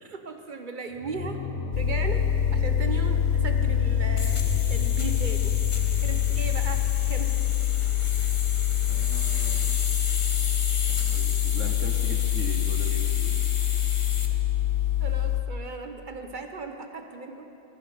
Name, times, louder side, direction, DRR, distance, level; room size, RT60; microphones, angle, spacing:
voice 1, 0.0-1.4 1.8-2.3 2.5-5.6 6.0-7.3 15.0-17.5, right 3 dB, 45° right, 6 dB, 0.8 m, -37 dB
sound 1, 0.9-9.9, left 2 dB, 60° left, 2.0 m, -32 dB
sound 2, 1.7-15.4, left 14 dB, 85° left, 1.1 m, -25 dB
sound 3, 2.0-14.3, left 4 dB, 30° left, 0.7 m, -35 dB
voice 2, 8.9-9.8 10.9-13.4, right 4 dB, 80° right, 5 dB, 1.4 m, -39 dB
16.5 x 9.4 x 5.1 m, 2.8 s
omnidirectional pair, 1.3 m